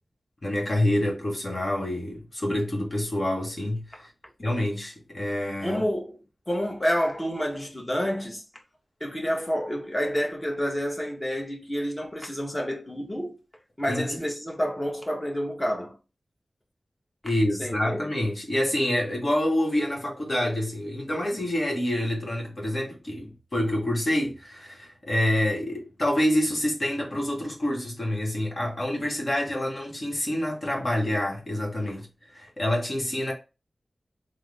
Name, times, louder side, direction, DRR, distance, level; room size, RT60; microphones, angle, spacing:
voice 1, 0.4-4.1 4.4-5.8 13.9-14.2 17.2-33.3, left 1 dB, 45° left, 1.3 m, -27 dB
voice 2, 5.6-6.2 6.5-8.4 9.0-13.4 13.8-16.0 17.6-18.1, equal, 20° left, 1.0 m, -29 dB
3.4 x 2.0 x 3.3 m
wide cardioid pair, 65°, 0 cm